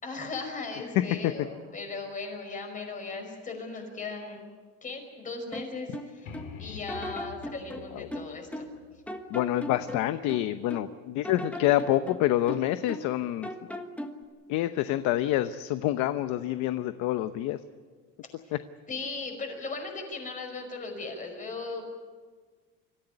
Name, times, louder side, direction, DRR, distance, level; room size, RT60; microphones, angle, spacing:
voice 1, 0.0-4.5 4.8-6.3 6.6-8.7 18.9-21.9, left 3 dB, 25° left, 4 dB, 5.3 m, -37 dB
voice 2, 1.0-1.3 8.0-8.1 9.3-13.5 14.5-17.6, left 14 dB, 65° left, 11 dB, 0.9 m, -27 dB
sound 1, 5.5-6.5 6.9-8.8 9.1-10.9 11.2-13.2 13.4-14.2, left 1 dB, 5° left, 1.4 m, -38 dB
sound 2, 6.3-9.9, left 6 dB, 85° left, 4.4 m, -47 dB
25.5 x 15.0 x 9.9 m, 1.5 s
cardioid pair, 155°, 31 cm